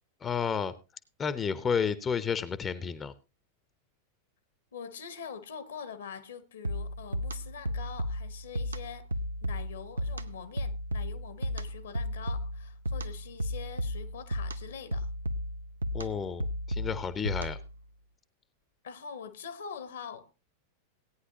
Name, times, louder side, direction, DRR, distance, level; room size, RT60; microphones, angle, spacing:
voice 1, 0.2-0.7 1.2-3.1 15.9-17.6, left 6 dB, 20° left, 0.7 m, -31 dB
voice 2, 4.7-9.1 9.4-15.1 18.8-20.3, left 7 dB, 65° left, 1.1 m, -44 dB
sound 1, 6.6-17.8, equal, 75° right, 0.7 m, -34 dB
17.0 x 9.6 x 2.8 m
figure-of-eight pair, 90°, 0 cm